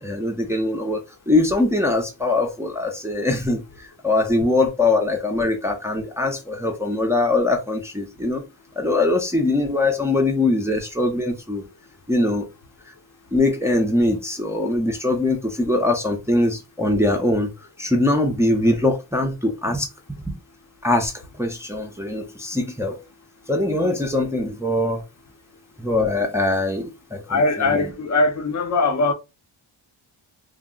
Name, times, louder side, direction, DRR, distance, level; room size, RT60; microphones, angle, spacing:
voice 1, 0.0-8.4 8.8-11.6 12.1-12.5 13.3-17.5 17.8-20.4 20.8-23.0 23.5-25.0 25.8-27.4 27.7-27.9, left 2 dB, 5° right, 0.5 m, -22 dB
voice 2, 27.3-29.1, left 3 dB, 35° left, 0.6 m, -20 dB
2.5 x 2.0 x 3.6 m
cardioid pair, 115°, 47 cm